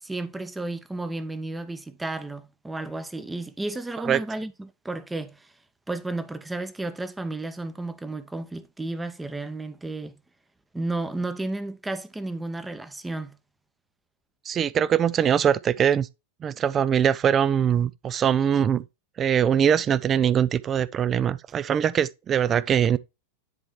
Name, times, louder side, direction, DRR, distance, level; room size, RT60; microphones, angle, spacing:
voice 1, 0.0-5.5 5.9-10.1 10.7-13.4, right 2 dB, 10° right, 0.7 m, -33 dB
voice 2, 14.5-16.1 16.4-18.8 19.2-23.0, right 8 dB, 25° right, 0.4 m, -22 dB
9.9 x 4.4 x 3.1 m
figure-of-eight pair, 90°, 0 cm